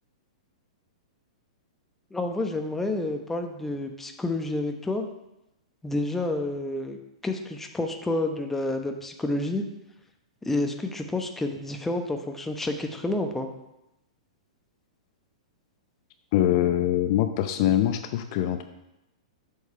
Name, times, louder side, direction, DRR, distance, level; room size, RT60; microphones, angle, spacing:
voice 1, 2.1-5.1 5.8-9.6 10.4-13.5, left 2 dB, 10° left, 5 dB, 0.9 m, -29 dB
voice 2, 16.3-18.6, left 12 dB, 50° left, 8 dB, 0.6 m, -23 dB
8.1 x 4.8 x 5.6 m, 0.89 s
hypercardioid pair, 110°, 3 cm